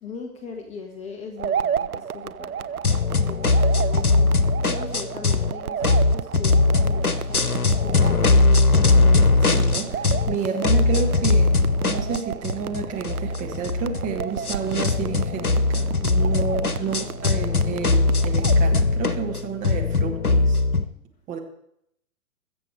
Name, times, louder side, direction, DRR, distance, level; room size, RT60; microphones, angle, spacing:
voice 1, 0.0-2.8 3.2-5.8 6.1-8.6 8.9-9.1 10.4-10.5 16.7-17.4, left 5 dB, 15° left, 4 dB, 1.2 m, -40 dB
sound 1, 1.4-18.6, right 8 dB, 85° right, 0.6 m, -33 dB
sound 2, 2.8-5.5 5.8-10.4 10.6-20.8, left 3 dB, 85° left, 1.0 m, -20 dB
voice 2, 9.4-11.5 11.8-20.6 21.3-21.4, right 5 dB, 15° right, 2 dB, 1.5 m, -30 dB
21.0 x 7.8 x 4.8 m, 0.73 s
figure-of-eight pair, 120°, 43 cm